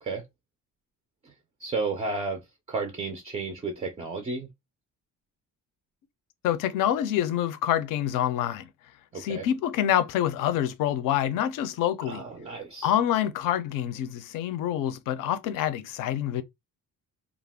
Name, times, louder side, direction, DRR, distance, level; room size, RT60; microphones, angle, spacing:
voice 1, 1.6-2.4 2.7-4.5 9.1-9.5 12.0-12.9, right 3 dB, 20° right, 0.3 m, -32 dB
voice 2, 6.4-8.7 9.2-12.2 12.8-16.4, left 11 dB, 65° left, 0.5 m, -26 dB
2.3 x 2.1 x 3.4 m
cardioid pair, 160°, 35 cm